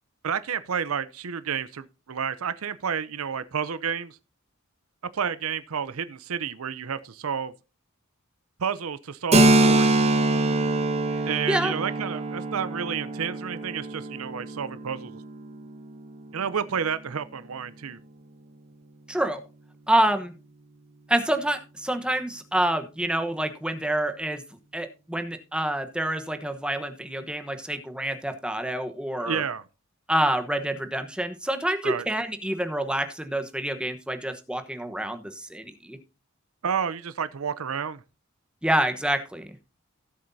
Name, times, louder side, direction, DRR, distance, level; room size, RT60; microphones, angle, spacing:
voice 1, 0.2-4.2 5.1-7.5 8.6-10.0 11.3-15.2 16.3-18.0 29.2-29.7 31.8-32.1 36.6-38.0, right 7 dB, 90° right, 0.6 m, -30 dB
Keyboard (musical), 9.3-16.7, right 2 dB, 30° right, 1.5 m, -24 dB
voice 2, 19.1-19.4 19.9-20.3 21.1-24.4 24.7-29.4 30.1-36.0 38.6-39.5, right 1 dB, 5° right, 1.1 m, -27 dB
17.0 x 7.7 x 2.7 m
head